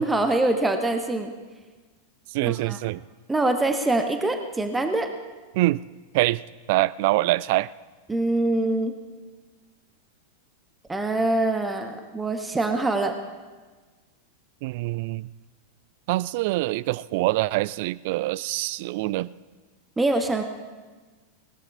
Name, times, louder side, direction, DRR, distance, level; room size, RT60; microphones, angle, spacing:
voice 1, 0.0-1.3 2.4-2.8 3.3-5.1 8.1-8.9 10.9-13.2 20.0-20.4, right 2 dB, 10° right, 6 dB, 1.2 m, -24 dB
voice 2, 2.3-3.0 5.5-5.8 6.1-6.4 6.7-7.7 14.6-15.3 16.1-19.3, right 18 dB, 50° right, 21 dB, 0.3 m, -24 dB
20.0 x 19.0 x 2.8 m, 1.4 s
figure-of-eight pair, 90°, 0 cm